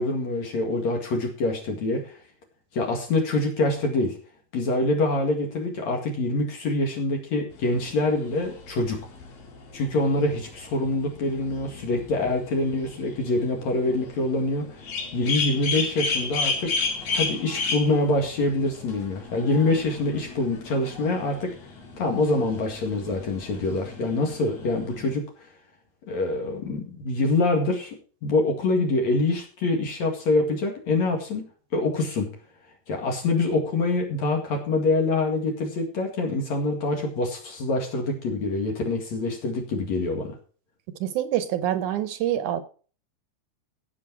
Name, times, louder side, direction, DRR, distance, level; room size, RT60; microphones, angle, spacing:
voice 1, 0.0-2.2 2.7-4.1 4.5-9.0 9.7-14.8 15.1-16.7 17.1-21.5 22.0-25.2 26.1-31.5 31.7-32.3 32.9-40.4, left 2 dB, 60° left, 1 dB, 3.2 m, -25 dB
sound 1, 7.5-25.1, left 4 dB, 85° left, 4.2 m, -34 dB
voice 2, 41.0-42.6, right 11 dB, 75° right, 11 dB, 2.3 m, -26 dB
16.5 x 6.5 x 4.6 m, 0.39 s
omnidirectional pair, 3.8 m